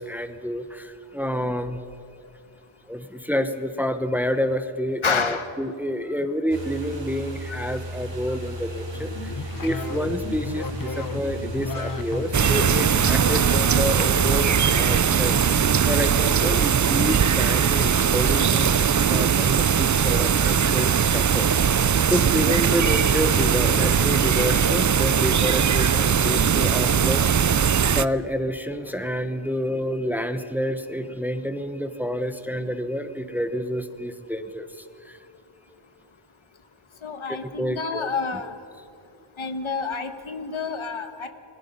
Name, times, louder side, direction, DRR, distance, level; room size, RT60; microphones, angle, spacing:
voice 1, 0.0-1.8 2.9-27.5 27.9-35.2 37.3-38.1, equal, 5° right, 9 dB, 1.1 m, -29 dB
voice 2, 5.0-5.5 7.5-7.6 37.0-38.5 39.4-41.3, left 5 dB, 70° left, 8 dB, 1.6 m, -28 dB
sound 1, 6.5-15.1, right 1 dB, 60° right, 2.7 m, -35 dB
sound 2, 8.8-15.2, left 4 dB, 40° left, 1.2 m, -35 dB
sound 3, 12.3-28.0, right 7 dB, 40° right, 0.5 m, -20 dB
29.5 x 21.5 x 5.5 m, 2.5 s
wide cardioid pair, 100°, 49 cm